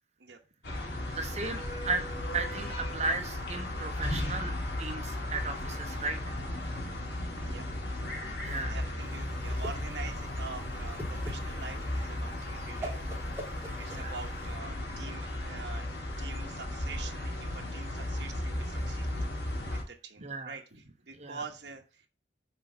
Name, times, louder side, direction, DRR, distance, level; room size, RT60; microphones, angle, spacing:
sound 1, 0.6-19.8, left 1 dB, 65° left, 1.9 m, -35 dB
voice 1, 1.1-2.1 2.3-6.3 8.4-8.8 13.8-14.1 20.2-20.5 21.2-21.4, right 3 dB, 40° right, 4 dB, 1.1 m, -35 dB
voice 2, 7.3-8.2 8.7-13.1 13.6-15.9 16.2-19.4 19.7-22.1, right 4 dB, 65° right, 3 dB, 1.0 m, -46 dB
Whoosh swoosh swish, 9.1-14.6, equal, 15° right, 1.5 m, -43 dB
6.1 x 4.1 x 5.5 m, 0.34 s
head